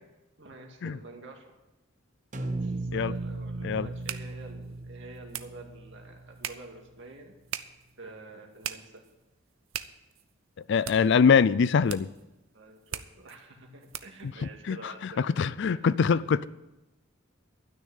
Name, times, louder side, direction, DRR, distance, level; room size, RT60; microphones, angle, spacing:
voice 1, 0.4-1.5 2.4-7.4 8.0-9.0 12.5-15.3 15.6-16.4, right 2 dB, 65° right, 2.3 m, -48 dB
sound 1, 2.3-6.5, right 2 dB, 40° right, 1.0 m, -36 dB
sound 2, 2.7-14.3, right 10 dB, 85° right, 0.7 m, -43 dB
voice 2, 10.7-12.1 14.7-16.5, left 6 dB, 60° left, 0.4 m, -23 dB
12.5 x 6.4 x 9.7 m
head